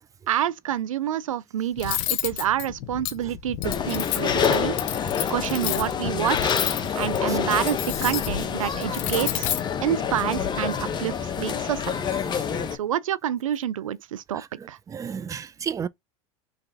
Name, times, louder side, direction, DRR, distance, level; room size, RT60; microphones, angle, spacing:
voice 1, 0.3-4.8 5.0-6.6 6.9-9.5 9.8-11.9 12.7-14.4 14.7-14.8, right 11 dB, 85° right, 0.4 m, -28 dB
Cutlery silverware, 1.8-10.5, left 12 dB, 60° left, 0.9 m, -31 dB
sound 1, 3.6-12.8, left 7 dB, 25° left, 0.8 m, -27 dB
voice 2, 14.3-15.9, right 7 dB, 20° right, 0.4 m, -33 dB
4.0 x 3.2 x 4.0 m
hypercardioid pair, 95°, 17 cm